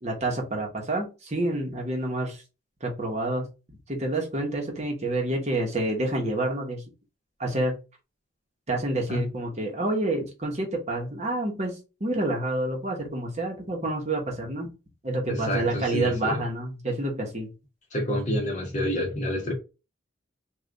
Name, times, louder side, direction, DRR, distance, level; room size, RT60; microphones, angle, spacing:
voice 1, 0.0-2.4 2.8-3.5 3.9-6.8 7.4-7.8 8.7-14.7 15.0-17.5, right 2 dB, 35° right, 1.0 m, -28 dB
voice 2, 15.3-16.4 17.9-19.5, equal, 35° left, 1.1 m, -28 dB
3.3 x 2.4 x 3.7 m
head